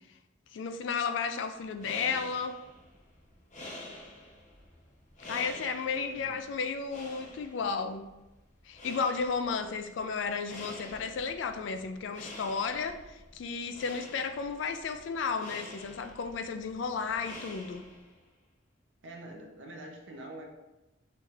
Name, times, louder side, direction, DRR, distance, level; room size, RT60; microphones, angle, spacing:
voice 1, 0.5-2.6 5.3-8.1 8.7-17.9, left 5 dB, 65° left, 8 dB, 0.3 m, -33 dB
sound 1, 1.8-18.2, left 1 dB, 35° left, 0.7 m, -48 dB
voice 2, 5.9-6.8 19.0-20.4, right 1 dB, 65° right, 2 dB, 0.6 m, -46 dB
4.3 x 3.2 x 2.4 m, 1.0 s
head